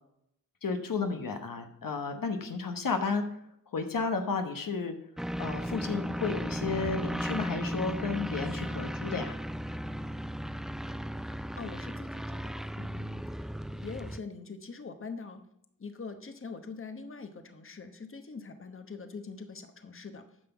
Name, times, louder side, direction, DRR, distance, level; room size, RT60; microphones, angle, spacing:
voice 1, 0.6-3.2 3.7-5.0 5.4-9.3, left 4 dB, 75° left, 6 dB, 1.1 m, -32 dB
sound 1, 5.2-14.2, equal, ahead, 0.3 m, -35 dB
voice 2, 11.6-13.2 13.6-15.4 15.8-20.2, left 4 dB, 40° left, 8 dB, 1.1 m, -43 dB
9.4 x 5.9 x 5.8 m, 0.76 s
cardioid pair, 60°, 34 cm